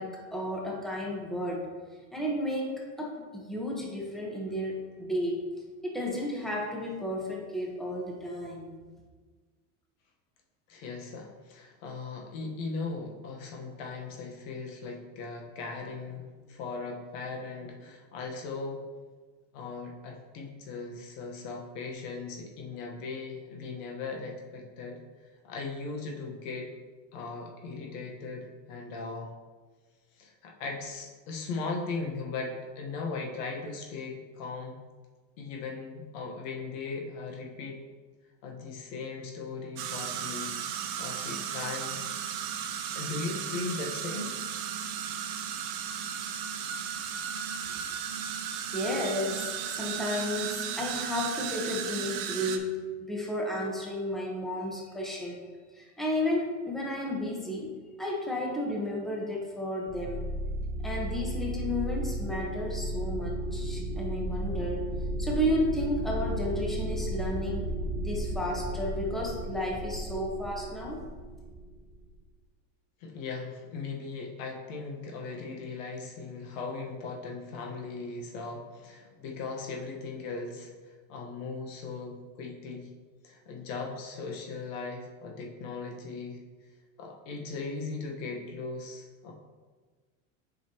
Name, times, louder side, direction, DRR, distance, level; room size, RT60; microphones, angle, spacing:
voice 1, 0.0-1.7 2.1-5.4 5.8-8.7 48.7-55.4 55.7-60.3 60.8-64.8 65.2-67.7 68.0-71.0, left 1 dB, ahead, -3 dB, 1.1 m, -33 dB
voice 2, 10.7-18.8 19.5-25.0 25.4-26.7 27.1-29.3 30.2-34.8 35.4-37.8 38.4-40.6 41.0-42.0 42.9-44.4 73.0-82.9 83.2-86.4 87.0-89.3, left 4 dB, 75° left, 0 dB, 1.4 m, -38 dB
sound 1, 39.8-52.6, right 8 dB, 60° right, 0.8 m, -35 dB
sound 2, 59.9-72.1, right 1 dB, 20° right, 0.7 m, -34 dB
7.5 x 5.6 x 3.0 m, 1.4 s
supercardioid pair, 125°, 38 cm